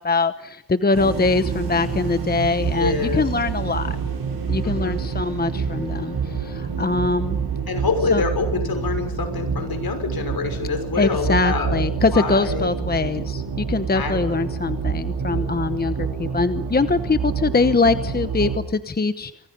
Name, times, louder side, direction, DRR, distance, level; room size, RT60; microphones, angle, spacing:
voice 1, 0.0-4.0 4.5-7.4 8.1-8.2 11.0-19.3, left 3 dB, 25° left, 11 dB, 1.0 m, -22 dB
sound 1, 0.9-18.6, right 6 dB, 65° right, 7.7 m, -27 dB
voice 2, 2.7-3.3 4.6-5.0 7.7-12.8 13.9-14.4, left 4 dB, 60° left, 7 dB, 6.1 m, -26 dB
29.0 x 25.0 x 5.5 m, 0.75 s
cardioid pair, 100°, 41 cm